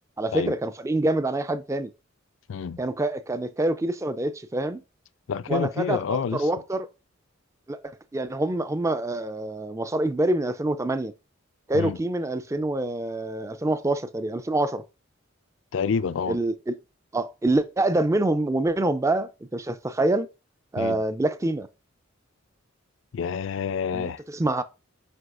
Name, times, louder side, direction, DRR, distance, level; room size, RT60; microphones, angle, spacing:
voice 1, 0.2-1.9 2.8-4.8 5.5-6.0 6.3-6.9 7.7-7.8 8.1-11.1 11.7-14.8 16.3-16.8 17.1-20.3 20.7-21.7 23.9-24.6, right 2 dB, 15° right, 0.4 m, -26 dB
voice 2, 5.3-6.5 11.7-12.0 15.7-16.4 20.8-21.0 23.1-24.2, left 6 dB, 65° left, 0.4 m, -28 dB
7.8 x 5.4 x 2.5 m
head